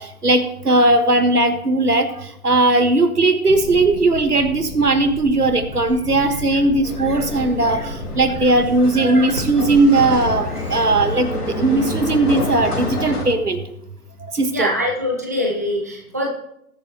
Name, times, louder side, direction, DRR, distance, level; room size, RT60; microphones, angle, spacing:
voice 1, 0.2-2.1 2.4-13.6 14.3-14.7, right 2 dB, 80° right, 10 dB, 1.6 m, -18 dB
sound 1, 3.5-8.9, left 3 dB, 40° left, 1.7 m, -34 dB
sound 2, 6.8-13.2, left 2 dB, 80° left, 3.4 m, -28 dB
voice 2, 14.5-16.3, left 1 dB, 10° right, 0 dB, 0.5 m, -23 dB
20.0 x 7.4 x 3.0 m, 0.76 s
figure-of-eight pair, 135°, 46 cm